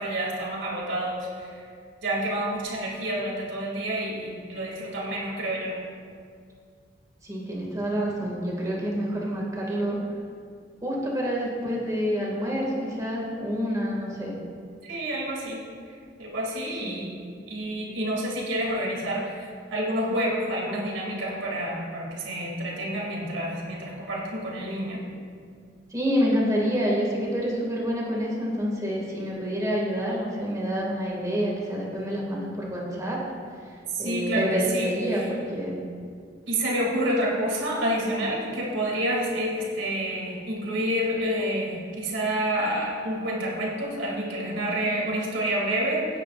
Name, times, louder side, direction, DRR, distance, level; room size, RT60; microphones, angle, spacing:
voice 1, 0.0-1.6 2.0-5.8 14.8-15.6 16.2-17.2 17.5-25.0 33.9-35.3 36.5-46.1, right 1 dB, 80° right, -3 dB, 2.7 m, -28 dB
voice 2, 7.2-10.0 10.8-14.4 16.8-17.0 25.9-33.2 34.0-35.8, equal, 20° right, -4 dB, 2.2 m, -27 dB
17.5 x 9.8 x 2.5 m, 2.2 s
head